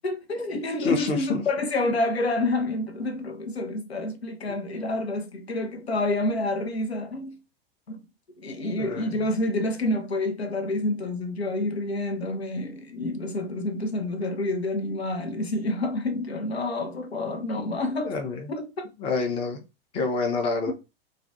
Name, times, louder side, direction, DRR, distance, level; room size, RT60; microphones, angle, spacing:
voice 1, 0.0-7.4 7.9-8.0 8.4-18.2 18.5-18.9, left 2 dB, 85° left, 0.5 m, -28 dB
voice 2, 0.8-1.4 4.5-4.6 8.8-9.2 17.6-17.7 18.0-18.5 19.0-19.6 19.9-20.7, left 4 dB, 20° left, 0.4 m, -28 dB
2.4 x 2.1 x 2.6 m
figure-of-eight pair, 95°, 31 cm